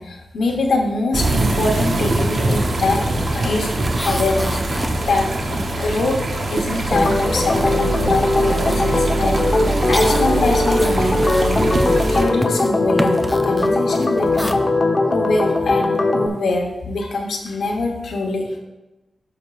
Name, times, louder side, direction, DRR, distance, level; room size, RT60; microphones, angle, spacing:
voice 1, 0.0-3.7 4.0-4.6 5.0-6.2 6.5-9.4 9.9-14.6 15.1-18.6, left 2 dB, 90° left, 1 dB, 1.1 m, -23 dB
sound 1, 1.1-12.2, right 2 dB, 60° right, 1.0 m, -23 dB
sound 2, 1.9-2.2 2.5-6.5 6.8-14.5, equal, ahead, 0.6 m, -32 dB
Organ, 6.9-16.3, left 2 dB, 45° left, 0.9 m, -19 dB
12.0 x 5.4 x 2.5 m, 1.0 s
cardioid pair, 55°, 0 cm